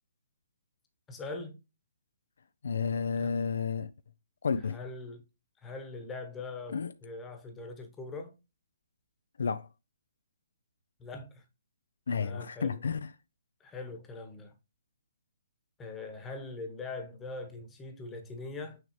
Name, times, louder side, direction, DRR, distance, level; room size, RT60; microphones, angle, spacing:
voice 1, 1.1-1.6 3.2-3.3 4.6-5.2 5.6-8.3 11.0-11.4 12.1-12.8 13.6-14.5 15.8-18.8, left 3 dB, 15° left, 1.2 m, -42 dB
voice 2, 2.6-3.9 4.4-4.8 6.7-6.9 9.4-9.7 12.1-13.0, left 5 dB, 65° left, 0.4 m, -31 dB
6.3 x 4.8 x 3.1 m
figure-of-eight pair, 135°, 0 cm